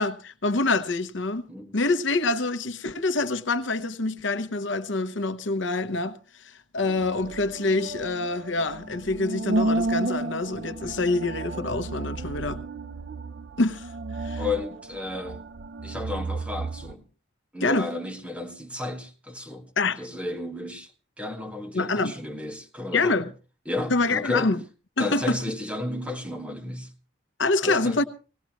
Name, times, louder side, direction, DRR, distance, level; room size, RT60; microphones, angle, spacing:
voice 1, 0.0-1.4 1.7-12.6 13.6-13.9 14.2-14.4 17.6-17.9 19.8-20.0 21.7-22.2 22.9-23.3 23.9-24.6 25.0-25.4 27.4-28.0, left 3 dB, 75° left, 1.0 m, -26 dB
sound 1, 6.8-16.9, right 2 dB, 60° right, 0.6 m, -32 dB
voice 2, 14.4-15.4 15.8-17.0 17.5-19.7 20.0-20.9 21.2-23.2 23.7-24.5 25.0-26.9 27.6-28.0, left 2 dB, 5° right, 1.9 m, -33 dB
19.5 x 17.5 x 3.0 m
head